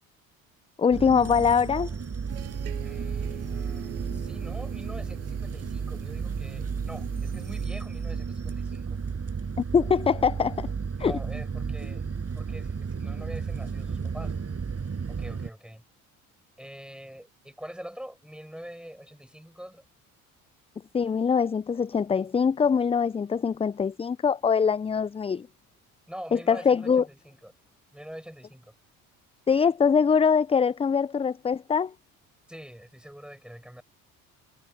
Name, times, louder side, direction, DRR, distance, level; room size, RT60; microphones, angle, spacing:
voice 1, 0.8-1.9 9.7-10.7 11.0-11.2 20.9-25.5 26.3-27.0 29.5-31.9, left 6 dB, 15° left, 0.4 m, -23 dB
sound 1, 0.9-15.5, right 5 dB, 35° right, 6.8 m, -33 dB
sound 2, 2.3-7.7, right 16 dB, 85° right, 7.5 m, -43 dB
voice 2, 2.8-9.0 11.0-12.1 12.3-14.4 15.1-15.8 16.6-19.8 26.1-27.5 27.9-28.7 32.5-33.8, equal, ahead, 7.0 m, -44 dB
hypercardioid pair, 55°, 43 cm